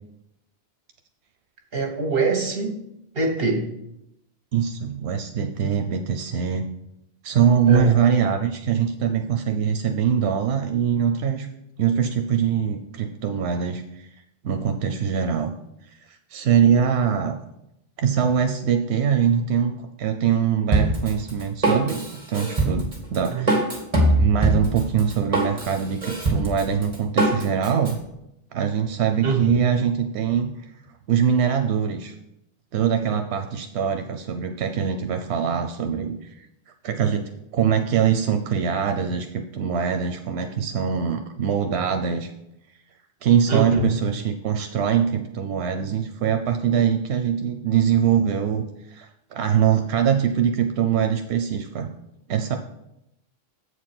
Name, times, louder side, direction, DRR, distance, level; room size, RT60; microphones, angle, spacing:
voice 1, 1.7-2.7 3.1-3.7 7.7-8.0 23.3-23.4 29.2-29.6 43.5-43.8, right 4 dB, 65° right, 4 dB, 1.4 m, -23 dB
voice 2, 4.5-6.7 7.2-11.5 11.8-14.1 14.4-15.5 16.0-17.4 18.0-23.7 24.1-28.0 28.5-30.5 31.1-32.1 32.7-36.5 36.8-42.3 43.2-51.9 52.3-52.6, right 8 dB, 90° right, 6 dB, 0.9 m, -23 dB
Drum kit, 20.7-27.9, right 2 dB, 35° right, 1.9 m, -23 dB
8.0 x 4.7 x 5.9 m, 0.84 s
omnidirectional pair, 1.1 m